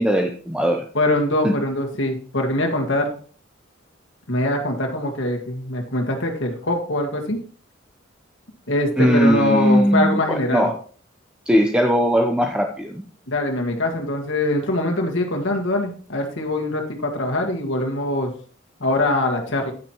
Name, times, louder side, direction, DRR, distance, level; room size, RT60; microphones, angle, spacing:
voice 1, 0.0-0.8 1.4-1.5 9.0-10.7 11.5-13.0, equal, 5° right, 3 dB, 0.7 m, -19 dB
voice 2, 0.9-3.1 4.3-7.4 8.7-10.7 13.3-18.3 18.8-19.7, left 1 dB, 70° left, 2 dB, 1.8 m, -23 dB
10.0 x 9.6 x 3.0 m, 0.43 s
head